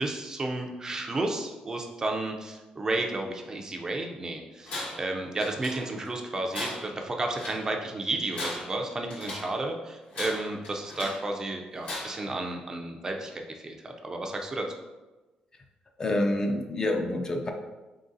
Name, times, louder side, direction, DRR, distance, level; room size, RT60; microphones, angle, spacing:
voice 1, 0.0-14.7, right 2 dB, 25° right, 2 dB, 0.5 m, -32 dB
Tools, 4.7-5.1 5.4-6.1 6.5-7.7 8.2-9.6 10.1-11.3 11.8-12.3, left 2 dB, 65° left, 1.3 m, -38 dB
voice 2, 16.0-17.5, left 1 dB, 30° left, 3 dB, 0.5 m, -27 dB
3.8 x 3.7 x 2.6 m, 1.1 s
cardioid pair, 115°, 2 cm